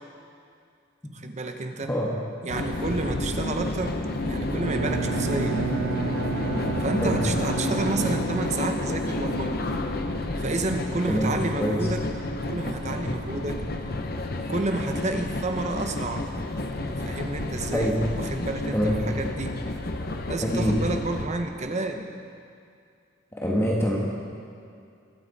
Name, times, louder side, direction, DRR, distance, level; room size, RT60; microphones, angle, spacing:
voice 1, 1.1-1.9 2.4-4.0 4.2-5.6 6.8-9.6 9.9-10.1 10.4-12.1 12.4-13.6 14.5-16.3 17.0-19.6 20.3-22.1, right 2 dB, 35° right, 5 dB, 0.9 m, -30 dB
sound 1, 2.5-21.3, left 2 dB, 50° left, 0.8 m, -30 dB
Bowed string instrument, 4.5-8.7, right 7 dB, 90° right, 0.4 m, -32 dB
voice 2, 11.1-11.8 17.7-18.0 18.7-19.0 20.4-20.7 23.3-24.0, equal, 15° left, -3 dB, 1.4 m, -25 dB
21.0 x 8.6 x 4.1 m, 2.4 s
head